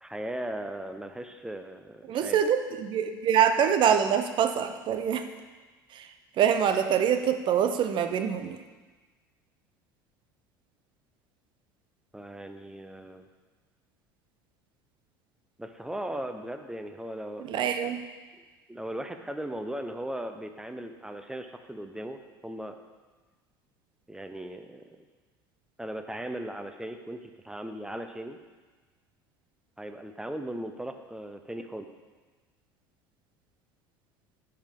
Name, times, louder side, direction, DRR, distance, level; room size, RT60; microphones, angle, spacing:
voice 1, 0.0-2.4 12.1-13.3 15.6-17.9 18.7-22.8 24.1-25.0 25.8-28.4 29.8-31.9, right 1 dB, 5° right, 7 dB, 0.7 m, -38 dB
voice 2, 2.1-5.2 5.9-6.1 6.4-8.6 17.4-18.0, right 8 dB, 45° right, 9 dB, 0.7 m, -25 dB
9.7 x 5.8 x 3.7 m, 1.3 s
hypercardioid pair, 70°, 11 cm